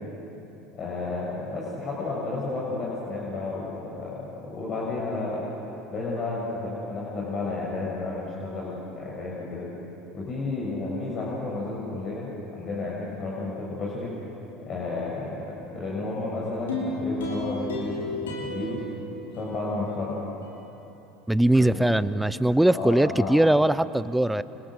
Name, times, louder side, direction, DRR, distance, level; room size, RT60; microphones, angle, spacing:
voice 1, 0.7-5.4 5.9-9.7 10.1-14.1 14.6-18.8 19.3-20.2 21.6-21.9 22.7-23.3, left 3 dB, 40° left, -4 dB, 6.7 m, -32 dB
sound 1, 16.7-20.0 20.4-20.5, left 2 dB, 80° left, 5.2 m, -33 dB
voice 2, 21.3-24.4, right 1 dB, 5° right, 16 dB, 0.8 m, -21 dB
29.5 x 25.5 x 6.4 m, 3.0 s
hypercardioid pair, 70°, 0 cm